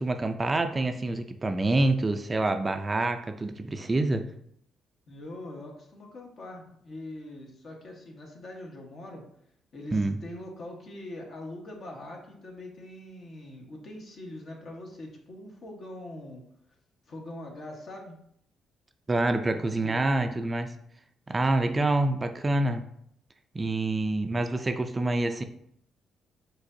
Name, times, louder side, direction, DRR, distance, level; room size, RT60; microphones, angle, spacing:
voice 1, 0.0-4.3 9.9-10.2 19.1-20.7 21.3-22.8 23.5-25.4, right 2 dB, 25° right, 7 dB, 0.4 m, -26 dB
voice 2, 5.1-9.2 9.7-16.4 17.1-18.2 19.5-20.2 21.6-21.9, left 1 dB, 55° left, 0 dB, 1.2 m, -43 dB
4.8 x 3.9 x 2.6 m, 0.69 s
cardioid pair, 90°, 0 cm